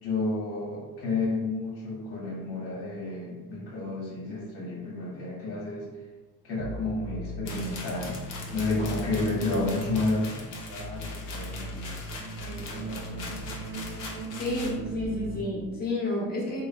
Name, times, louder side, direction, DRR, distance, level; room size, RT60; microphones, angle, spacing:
voice 1, 0.0-5.9 6.4-8.2 8.5-11.9 12.4-13.5, left 2 dB, 65° left, -5 dB, 1.0 m, -31 dB
sound 1, 6.6-15.4, right 1 dB, 35° right, 0.4 m, -38 dB
sound 2, 7.5-14.8, left 3 dB, 50° left, 0.7 m, -42 dB
voice 2, 14.2-16.6, left 1 dB, 20° left, -6 dB, 1.0 m, -30 dB
3.0 x 2.1 x 2.5 m, 1.2 s
supercardioid pair, 80°, 42 cm